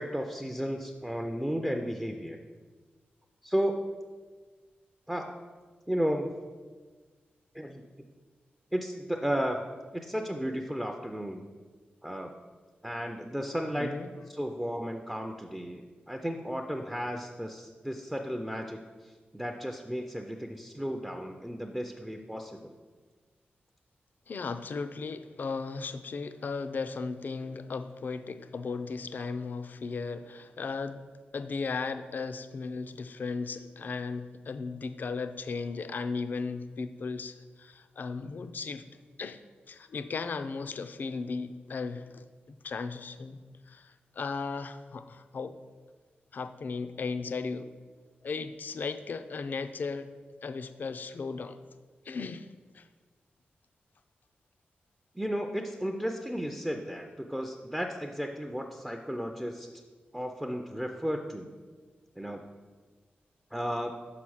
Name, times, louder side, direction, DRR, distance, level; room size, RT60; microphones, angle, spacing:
voice 1, 0.0-2.4 3.4-3.8 5.1-5.4 5.9-6.3 7.5-7.8 8.7-9.6 9.9-11.4 12.0-12.3 12.8-13.9 14.3-22.6 55.1-59.7 60.1-61.5 62.2-62.5 63.5-63.9, equal, 5° right, 4 dB, 0.4 m, -34 dB
voice 2, 13.7-14.1 24.3-31.0 31.3-38.8 39.2-39.4 39.7-43.4 43.7-45.6 46.3-47.7 48.2-50.1 50.4-51.6 52.1-52.8, left 4 dB, 55° left, 10 dB, 0.4 m, -36 dB
5.8 x 5.6 x 6.2 m, 1.4 s
wide cardioid pair, 125°, 4 cm